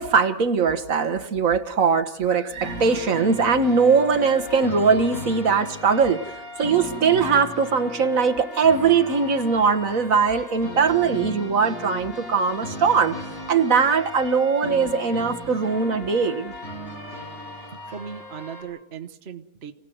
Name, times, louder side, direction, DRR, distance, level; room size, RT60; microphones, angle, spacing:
voice 1, 0.0-6.2 6.6-13.2 13.5-16.5, right 5 dB, 65° right, 6 dB, 1.7 m, -21 dB
sound 1, 2.6-18.6, left 1 dB, 85° left, 7.9 m, -36 dB
voice 2, 17.9-19.7, right 7 dB, 50° right, 5 dB, 1.3 m, -37 dB
28.0 x 17.5 x 7.8 m, 0.80 s
omnidirectional pair, 1.5 m